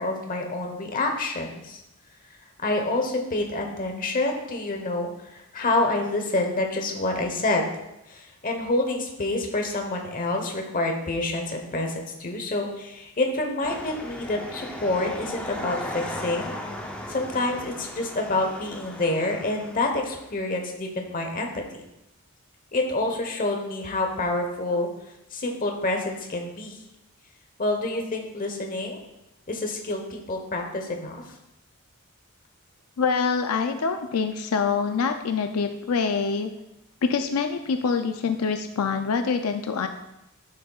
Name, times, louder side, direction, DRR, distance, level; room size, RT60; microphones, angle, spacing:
voice 1, 0.0-1.8 2.6-7.7 8.1-16.5 17.1-21.6 22.7-24.9 25.3-26.8 27.6-29.0 29.5-31.2, left 2 dB, 40° left, 3 dB, 1.1 m, -27 dB
sound 1, 13.6-20.3, left 1 dB, 5° left, 0.6 m, -37 dB
voice 2, 33.0-36.5 37.0-39.9, left 5 dB, 85° left, 7 dB, 0.5 m, -25 dB
10.0 x 6.5 x 2.4 m, 0.88 s
head